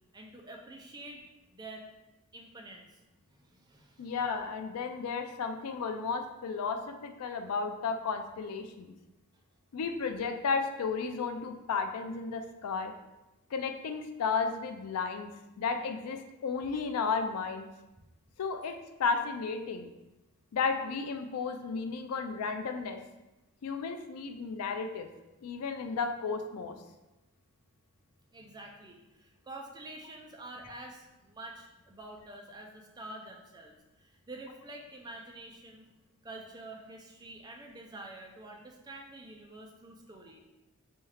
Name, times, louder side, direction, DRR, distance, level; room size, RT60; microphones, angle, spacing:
voice 1, 0.1-1.2 1.5-1.9 2.3-3.0 3.3-4.2 18.6-18.8 28.3-35.9 36.2-40.4, right 2 dB, 20° right, 1 dB, 0.3 m, -47 dB
voice 2, 4.0-8.9 9.7-12.9 13.5-15.3 15.6-17.7 18.4-19.9 20.5-23.0 23.6-25.1 25.4-26.8, left 5 dB, 85° left, 7 dB, 0.4 m, -33 dB
4.2 x 2.3 x 3.2 m, 1.0 s
head